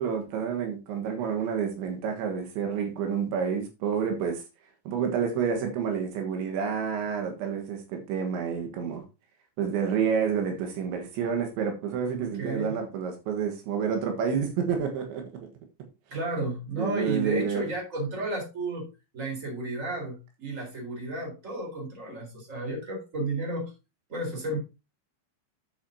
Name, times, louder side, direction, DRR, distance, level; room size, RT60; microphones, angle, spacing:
voice 1, 0.0-4.4 4.9-9.0 9.6-15.2 16.1-16.2 16.8-17.6, right 7 dB, 80° right, 3.6 m, -29 dB
voice 2, 12.1-12.8 16.1-18.9 19.1-23.7 24.1-24.6, right 2 dB, 15° right, 4.2 m, -32 dB
9.4 x 8.9 x 2.8 m
omnidirectional pair, 5.4 m